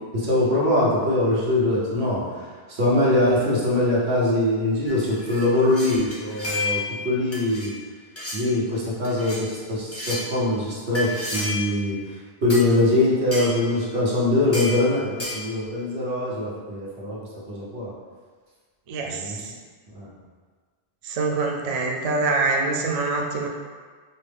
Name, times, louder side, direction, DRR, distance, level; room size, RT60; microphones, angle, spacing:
voice 1, 0.1-7.7 8.3-12.2 12.4-17.9 19.0-19.4 19.9-20.1, left 1 dB, 85° right, -6 dB, 1.3 m, -23 dB
sound 1, 4.9-7.0 7.3-7.7 8.2-8.4 9.0-9.4 9.9-10.3 10.9-11.8 12.5-12.7 13.3-13.6 14.5-14.8 15.2-15.5, left 2 dB, 15° left, 0.6 m, -31 dB
voice 2, 18.9-19.5 21.0-23.5, right 3 dB, 50° right, 0 dB, 0.5 m, -25 dB
5.2 x 2.2 x 3.4 m, 1.5 s
omnidirectional pair, 1.1 m